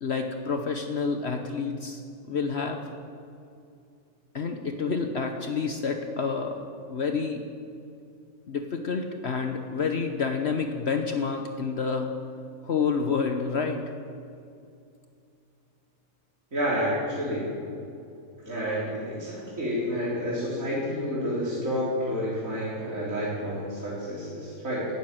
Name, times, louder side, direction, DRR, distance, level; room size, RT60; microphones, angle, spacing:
voice 1, 0.0-2.8 4.3-6.6 6.9-7.5 8.5-12.1 12.6-13.8, left 5 dB, 55° left, 5 dB, 1.1 m, -29 dB
voice 2, 16.5-17.5 18.4-24.9, equal, 70° right, -8 dB, 4.1 m, -29 dB
12.5 x 11.0 x 9.2 m, 2.5 s
omnidirectional pair, 1.4 m